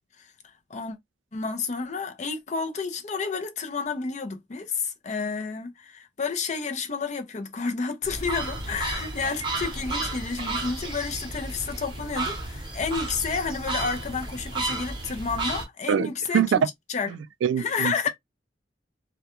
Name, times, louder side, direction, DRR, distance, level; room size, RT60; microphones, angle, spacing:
voice 1, 0.2-1.0 1.3-16.6 16.9-17.1 17.6-18.1, left 5 dB, 40° left, 0.5 m, -30 dB
sound 1, 8.0-15.6, right 2 dB, 25° right, 0.8 m, -32 dB
voice 2, 15.9-16.6 17.1-18.1, right 8 dB, 80° right, 0.3 m, -25 dB
2.2 x 2.2 x 2.9 m
head